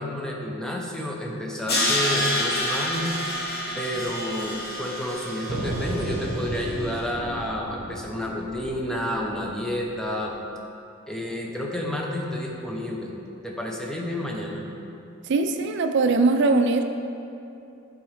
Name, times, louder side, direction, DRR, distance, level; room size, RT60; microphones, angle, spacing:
voice 1, 0.0-3.2 3.8-10.3 11.1-13.1 13.4-14.7, left 1 dB, 5° left, -2 dB, 0.6 m, -30 dB
Crash cymbal, 1.7-6.7, left 1 dB, 50° left, 1.1 m, -28 dB
sound 1, 5.5-10.3, right 1 dB, 90° right, 0.7 m, -34 dB
voice 2, 15.3-16.8, right 3 dB, 60° right, 6 dB, 0.4 m, -21 dB
9.2 x 3.8 x 3.2 m, 2.7 s
head